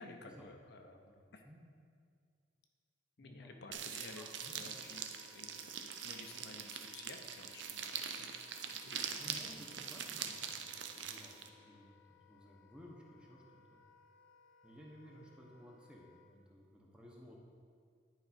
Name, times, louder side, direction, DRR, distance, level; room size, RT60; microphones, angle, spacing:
voice 1, 0.0-1.0 1.3-1.4 3.2-4.3 4.5-8.3 8.7-9.2, left 3 dB, 60° left, 4 dB, 0.6 m, -53 dB
voice 2, 0.9-1.6 3.2-3.6 4.2-4.7 8.9-13.9 14.6-17.4, equal, 5° right, -2 dB, 0.9 m, -57 dB
sound 1, 3.7-11.5, right 7 dB, 70° right, 0.5 m, -43 dB
Wind instrument woodwind instrument, 4.0-16.3, left 6 dB, 85° left, 1.0 m, -66 dB
10.5 x 4.9 x 4.2 m, 2.2 s
head